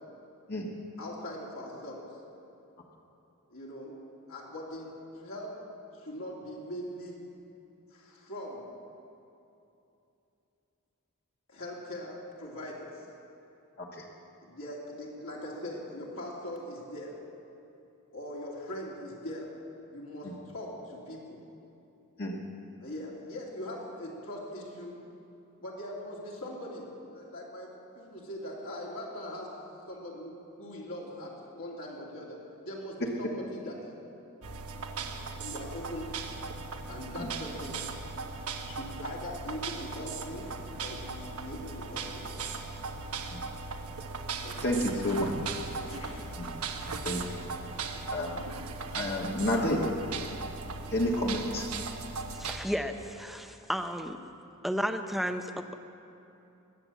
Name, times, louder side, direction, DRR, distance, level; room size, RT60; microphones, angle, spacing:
voice 1, 1.0-2.1 3.5-3.9 4.3-5.5 5.9-7.2 7.9-8.6 11.5-13.0 14.4-17.2 18.1-19.5 19.9-21.4 22.8-25.0 25.6-29.5 29.9-33.8 35.4-36.4 36.9-37.8 38.6-40.5 40.8-42.5 44.4-45.2 45.7-46.4 47.8-48.0 50.1-50.3, left 1 dB, 65° left, -4 dB, 2.7 m, -41 dB
sound 1, 34.4-52.6, right 4 dB, 85° right, 1.1 m, -38 dB
voice 2, 44.6-45.3 46.4-46.5 47.0-47.4 48.1-48.4 48.9-49.8 50.9-51.7, left 1 dB, 45° left, -3 dB, 1.4 m, -30 dB
voice 3, 52.3-54.2 54.6-55.8, equal, ahead, 7 dB, 0.6 m, -33 dB
21.0 x 8.6 x 7.4 m, 2.8 s
head